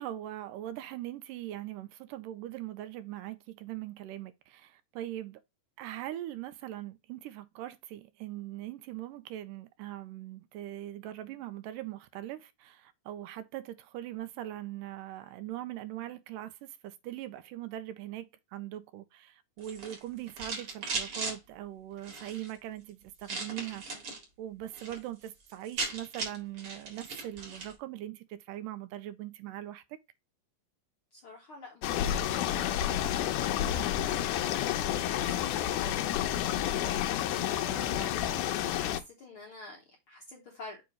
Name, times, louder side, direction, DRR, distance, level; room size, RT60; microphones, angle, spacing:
voice 1, 0.0-5.4 5.8-18.3 18.5-30.0, right 13 dB, 80° right, 2.1 m, -41 dB
sound 1, 19.6-21.4 22.0-22.5 23.2-24.2 24.6-25.0 25.3-25.4 25.5-27.8, right 4 dB, 45° right, 2.4 m, -38 dB
voice 2, 31.1-40.8, left 3 dB, 65° left, 1.3 m, -49 dB
sound 2, 31.8-39.0, left 11 dB, 85° left, 1.9 m, -30 dB
7.0 x 2.9 x 4.9 m
omnidirectional pair, 4.0 m